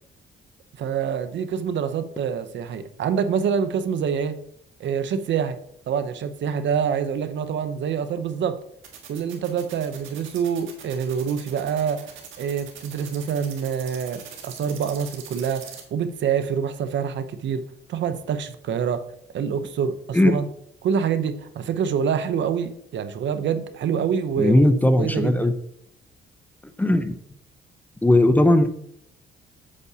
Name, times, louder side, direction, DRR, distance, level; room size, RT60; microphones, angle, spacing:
voice 1, 0.8-4.3 4.8-5.6 5.9-8.6 9.1-12.1 12.4-17.6 17.9-19.0 19.3-20.5 20.8-24.6 25.0-25.5, right 7 dB, 65° right, 10 dB, 0.8 m, -26 dB
sound 1, 8.8-15.8, right 9 dB, 85° right, 1.5 m, -42 dB
voice 2, 24.4-25.5 26.8-27.1 28.0-28.7, left 1 dB, 10° left, 9 dB, 0.6 m, -17 dB
8.3 x 7.0 x 2.8 m, 0.68 s
cardioid pair, 90°, 20 cm